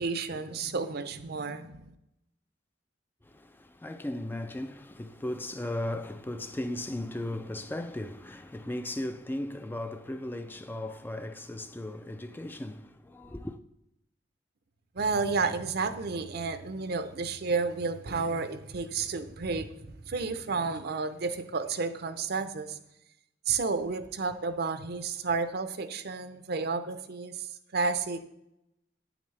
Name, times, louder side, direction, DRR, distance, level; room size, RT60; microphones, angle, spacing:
voice 1, 0.0-1.8 15.0-22.8 23.5-27.5 27.7-28.2, right 4 dB, 60° right, 0.6 m, -31 dB
voice 2, 3.2-13.6, left 1 dB, 10° left, 0.3 m, -36 dB
8.9 x 8.5 x 3.3 m
head